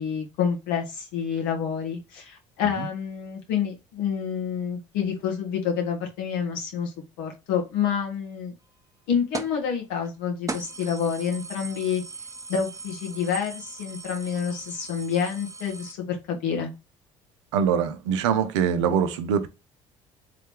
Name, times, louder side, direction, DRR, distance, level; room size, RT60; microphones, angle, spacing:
voice 1, 0.0-8.5 9.1-12.0 12.5-16.7, left 7 dB, 75° left, 1.6 m, -28 dB
sound 1, 9.3-9.6 10.0-10.1 10.5-15.9, right 3 dB, 20° right, 0.9 m, -38 dB
voice 2, 17.5-19.5, right 7 dB, 80° right, 0.6 m, -23 dB
3.8 x 3.2 x 3.5 m
hypercardioid pair, 60°, 15 cm